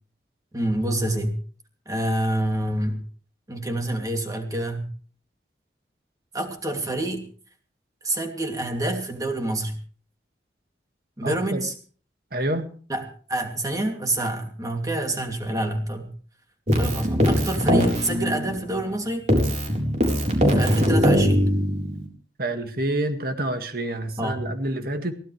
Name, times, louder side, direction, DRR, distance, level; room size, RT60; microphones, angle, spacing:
voice 1, 0.5-1.4 1.9-3.0 3.5-4.9 6.3-7.3 8.0-9.8 11.2-11.7 12.9-13.0 13.3-16.1 16.7-19.2 20.5-21.5 24.2-24.5, right 1 dB, 20° right, 4 dB, 2.7 m, -27 dB
voice 2, 11.2-11.6 12.3-12.7 22.4-25.1, right 1 dB, 55° right, 7 dB, 2.0 m, -27 dB
Keyboard (musical), 16.7-19.0 19.3-22.1, equal, 40° right, 4.1 m, -21 dB
22.5 x 17.0 x 3.3 m, 0.43 s
head